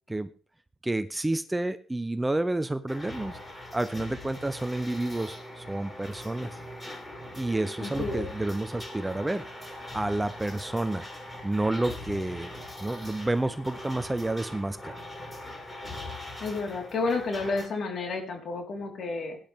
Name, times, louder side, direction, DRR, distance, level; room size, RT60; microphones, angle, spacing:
voice 1, 0.8-3.4 3.7-6.6 7.4-9.5 9.9-11.1 11.4-12.5 12.8-15.0, right 2 dB, 10° right, 13 dB, 0.7 m, -30 dB
sound 1, 2.9-17.7, left 1 dB, 15° left, 7.7 m, -41 dB
voice 2, 7.8-8.3 16.4-19.4, left 3 dB, 60° left, 2 dB, 4.3 m, -31 dB
18.0 x 10.5 x 3.6 m, 0.38 s
cardioid pair, 90°, 0 cm